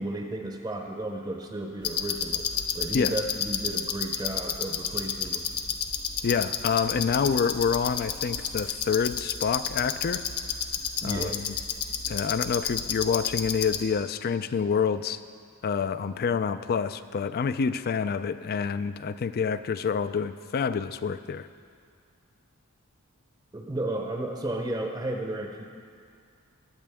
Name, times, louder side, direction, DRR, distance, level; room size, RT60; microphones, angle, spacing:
voice 1, 0.0-5.5 11.0-11.4 23.5-25.6, right 1 dB, 20° right, 3 dB, 0.7 m, -33 dB
sound 1, 1.8-13.8, left 7 dB, 85° left, 0.9 m, -31 dB
voice 2, 6.2-10.2 11.0-11.6 12.1-15.2 15.6-21.5, left 6 dB, 45° left, 13 dB, 0.4 m, -27 dB
21.0 x 8.5 x 3.5 m, 2.2 s
head